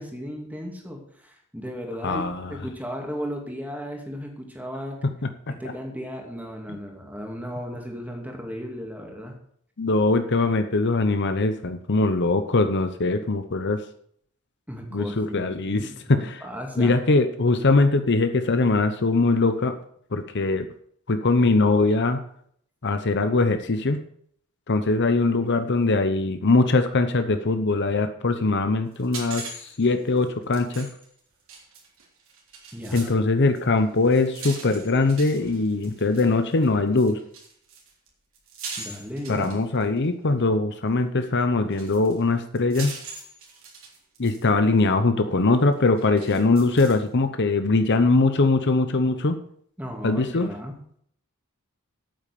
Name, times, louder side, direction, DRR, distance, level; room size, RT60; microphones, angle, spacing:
voice 1, 0.0-5.0 5.5-9.3 14.7-17.0 32.7-33.1 38.8-39.5 49.8-50.7, equal, 5° right, 1 dB, 2.5 m, -35 dB
voice 2, 2.0-2.5 9.8-13.8 14.9-16.4 16.8-19.8 20.1-20.7 21.1-22.2 22.8-24.0 24.7-30.9 32.9-37.2 39.3-42.9 44.2-49.4 50.0-50.5, left 3 dB, 50° left, 8 dB, 0.9 m, -21 dB
sound 1, 28.9-33.2 33.5-40.0 41.2-41.3 41.7-44.5 44.8-44.9 45.7-47.1, right 4 dB, 65° right, 3.6 m, -41 dB
9.0 x 8.8 x 6.8 m, 0.65 s
head